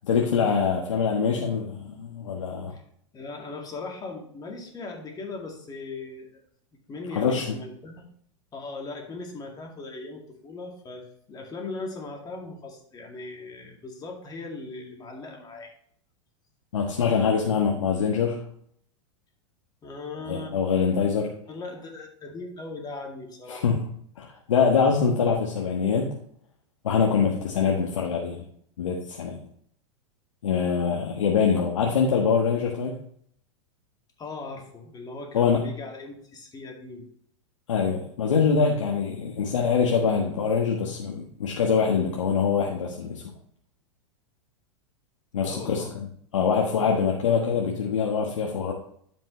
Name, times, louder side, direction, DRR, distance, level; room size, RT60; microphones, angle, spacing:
voice 1, 0.0-2.7 7.1-7.6 16.7-18.4 20.3-21.3 23.5-23.8 24.2-26.1 26.8-28.4 28.8-29.4 30.4-32.9 35.3-35.6 37.7-43.2 45.3-45.8 46.3-48.7, left 6 dB, 80° left, 0 dB, 1.3 m, -24 dB
voice 2, 3.1-6.4 6.9-8.0 8.5-15.7 19.8-20.5 21.5-23.7 34.2-37.1 45.4-45.9, left 3 dB, 25° left, 1 dB, 2.3 m, -38 dB
12.0 x 5.4 x 3.2 m, 0.63 s
hypercardioid pair, 105°, 16 cm